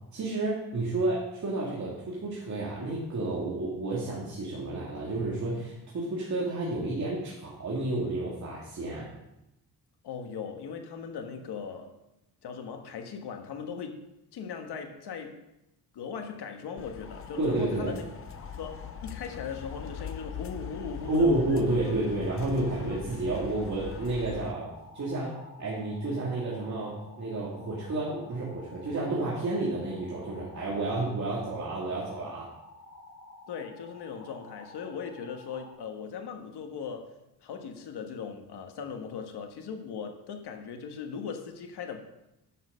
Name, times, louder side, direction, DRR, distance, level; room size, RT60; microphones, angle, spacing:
voice 1, 0.1-9.1 17.4-17.9 21.1-32.5, right 2 dB, 45° right, 2.4 m, -30 dB
voice 2, 10.0-12.0 12.4-14.1 14.3-15.4 15.9-18.0 18.4-21.3 33.5-37.1 37.4-42.0, left 6 dB, 80° left, 1.5 m, -39 dB
sound 1, 16.8-24.5, left 8 dB, 35° left, 0.5 m, -42 dB
sound 2, 17.0-35.7, left 2 dB, 65° left, 3.4 m, -51 dB
10.0 x 6.5 x 5.5 m
cardioid pair, 115°, 39 cm